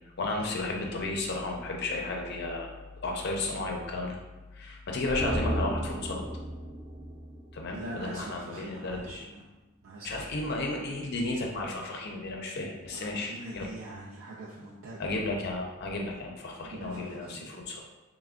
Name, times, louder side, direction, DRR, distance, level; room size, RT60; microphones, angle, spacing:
voice 1, 0.2-2.7 3.0-4.2 4.5-6.2 7.5-9.2 10.0-13.7 15.0-17.8, left 2 dB, 55° left, 0 dB, 0.4 m, -33 dB
sound 1, 5.1-8.5 8.8-8.9, equal, 20° right, 0.5 m, -35 dB
voice 2, 7.7-9.5 9.8-10.2 12.9-15.2 16.6-17.6, right 2 dB, 75° right, -6 dB, 0.5 m, -43 dB
3.3 x 2.0 x 3.5 m, 1.1 s
head